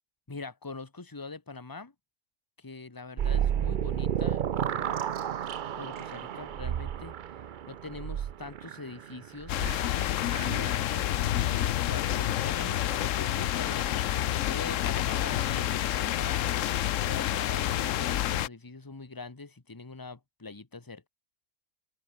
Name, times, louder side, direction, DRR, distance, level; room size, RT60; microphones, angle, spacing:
voice 1, 0.3-1.9 2.6-5.0 5.7-7.1 7.7-9.6 10.3-16.6 17.0-21.1, left 3 dB, 15° left, 1.3 m, -43 dB
sound 1, 3.2-10.7, right 9 dB, 70° right, 0.4 m, -32 dB
sound 2, 9.5-18.5, left 12 dB, 65° left, 0.9 m, -28 dB
open air
omnidirectional pair, 1.6 m